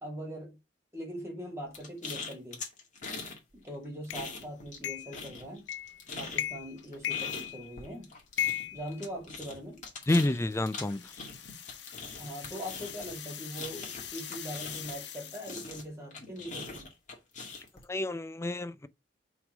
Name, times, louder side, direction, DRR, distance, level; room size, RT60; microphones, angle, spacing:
voice 1, 0.0-0.6 0.9-2.6 3.5-5.7 6.2-8.1 8.7-9.8 12.2-16.9, equal, 15° right, 2.4 m, -41 dB
sound 1, 1.7-3.4 3.7-4.8 5.1-15.1 15.4-17.8, left 4 dB, 45° left, 2.1 m, -42 dB
sound 2, 4.1-4.2 4.8-5.2 5.7-6.0 6.3-6.7 7.0-7.9 8.4-9.6, left 11 dB, 90° left, 0.5 m, -34 dB
voice 2, 10.1-11.0 17.9-18.9, left 2 dB, 15° left, 0.4 m, -29 dB
sound 3, 10.3-15.8, left 9 dB, 70° left, 1.3 m, -45 dB
5.8 x 3.8 x 5.1 m
head